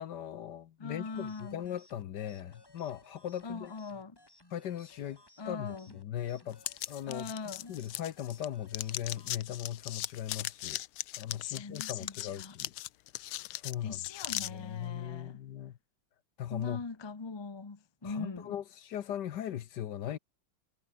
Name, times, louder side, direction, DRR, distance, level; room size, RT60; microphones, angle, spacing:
voice 1, 0.0-3.7 4.5-5.2 5.5-6.6 6.9-7.3 7.7-10.8 11.2-12.7 13.5-14.0 14.3-15.7 16.4-16.8 18.0-20.2, left 11 dB, 60° left, 1.4 m, -39 dB
voice 2, 0.8-1.6 3.4-4.2 5.4-5.9 7.1-7.7 11.4-12.5 13.8-15.4 16.5-18.5, left 4 dB, 30° left, 0.4 m, -41 dB
sound 1, 1.0-9.4, left 1 dB, 10° left, 2.3 m, -61 dB
sound 2, 6.6-8.5 8.7-14.5, left 16 dB, 85° left, 1.6 m, -38 dB
omnidirectional pair, 2.3 m